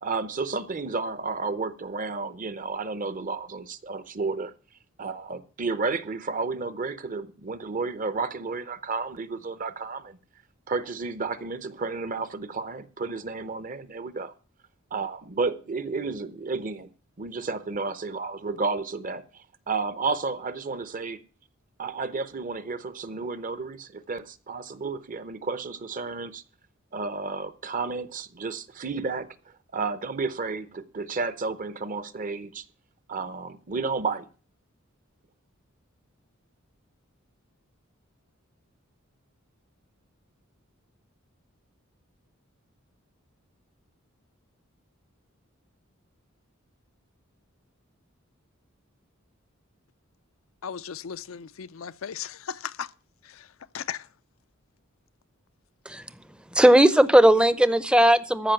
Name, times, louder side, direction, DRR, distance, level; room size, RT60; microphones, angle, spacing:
voice 1, 0.0-4.5 5.0-10.2 10.7-14.3 14.9-16.9 17.2-21.2 21.8-26.4 26.9-29.4 29.7-32.6 33.1-34.3, right 4 dB, 40° right, 0.8 m, -32 dB
voice 2, 50.6-52.9 53.2-53.5 53.7-54.1, left 7 dB, 75° left, 0.5 m, -36 dB
voice 3, 56.5-58.5, right 1 dB, 5° right, 0.6 m, -17 dB
14.0 x 5.3 x 7.6 m
head